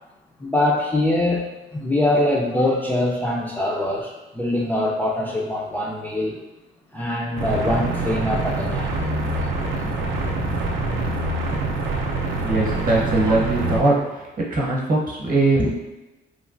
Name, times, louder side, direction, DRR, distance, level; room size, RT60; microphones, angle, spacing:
voice 1, 0.4-1.4 1.7-6.4 6.9-8.9 12.9-13.4 15.6-15.7, left 1 dB, 10° left, -4 dB, 0.4 m, -23 dB
sound 1, 7.4-13.8, right 2 dB, 75° right, 0.5 m, -25 dB
voice 2, 12.4-15.7, right 2 dB, 45° right, -3 dB, 0.9 m, -21 dB
3.2 x 2.3 x 2.5 m, 1.0 s
cardioid pair, 90°, 20 cm